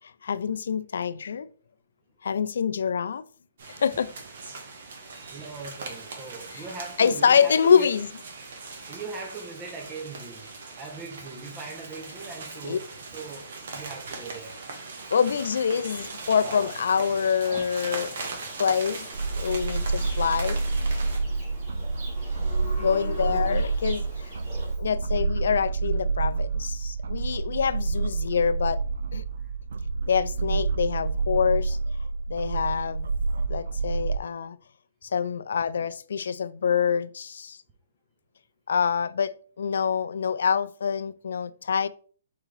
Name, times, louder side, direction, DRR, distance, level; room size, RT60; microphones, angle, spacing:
voice 1, 0.2-1.5 2.2-3.2 3.8-4.1 6.6-6.7 7.0-8.1 12.6-12.8 15.1-18.2 18.6-19.1 19.3-20.6 20.9-21.0 22.8-24.3 24.8-28.8 29.1-29.2 30.1-31.8 32.3-33.1 33.5-34.6 35.0-37.6 38.7-41.9, left 7 dB, 75° left, 0.3 m, -25 dB
sound 1, 3.6-21.2, right 4 dB, 60° right, 1.1 m, -40 dB
voice 2, 5.2-7.9 8.8-10.5 10.8-12.8 13.1-14.6 21.3-21.8 22.0-22.2 22.8-23.1, right 3 dB, 15° right, 0.6 m, -40 dB
Livestock farm animals working animals, 16.2-24.7, right 1 dB, 40° right, 2.0 m, -43 dB
sound 2, 19.1-34.2, right 4 dB, 80° right, 0.3 m, -28 dB
4.6 x 3.6 x 3.2 m
hypercardioid pair, 165°, 0 cm